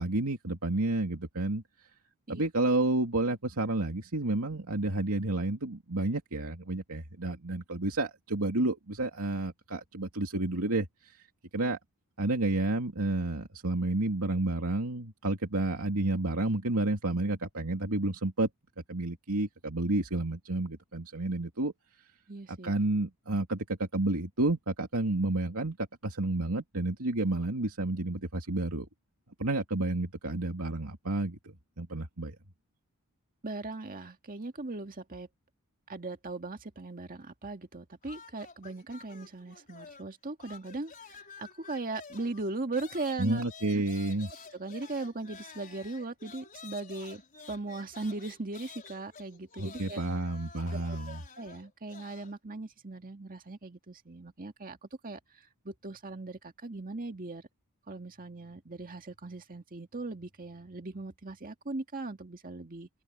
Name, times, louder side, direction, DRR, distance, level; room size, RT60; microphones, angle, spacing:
voice 1, 0.0-1.6 2.3-11.2 11.5-11.8 12.2-18.5 18.9-21.7 22.5-25.8 26.0-28.9 29.4-32.3 43.2-44.3 49.6-51.2, right 2 dB, 75° right, 2.8 m, -30 dB
voice 2, 22.3-22.7 33.4-35.3 35.9-43.4 43.7-43.8 44.5-47.2 47.5-50.0 50.7-57.4 57.9-62.9, right 2 dB, 40° right, 1.9 m, -39 dB
sound 1, 38.0-40.1 40.4-52.3, left 5 dB, 40° left, 4.8 m, -50 dB
open air
head